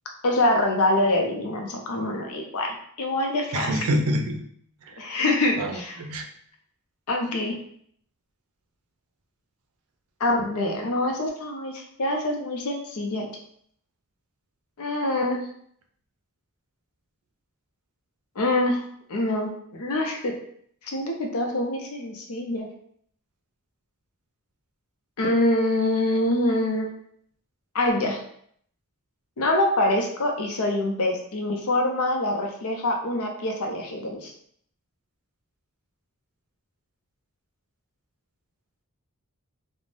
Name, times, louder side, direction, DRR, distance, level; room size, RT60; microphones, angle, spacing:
voice 1, 0.2-3.8 5.0-6.0 7.1-7.6 10.2-13.3 14.8-15.4 18.4-18.8 19.1-20.3 20.9-22.7 25.2-26.9 27.7-28.2 29.4-34.3, left 1 dB, 80° left, 2 dB, 0.6 m, -25 dB
voice 2, 3.5-4.4 4.9-5.0 5.6-6.3, equal, 80° right, 4 dB, 0.4 m, -26 dB
2.5 x 2.1 x 3.2 m, 0.64 s
head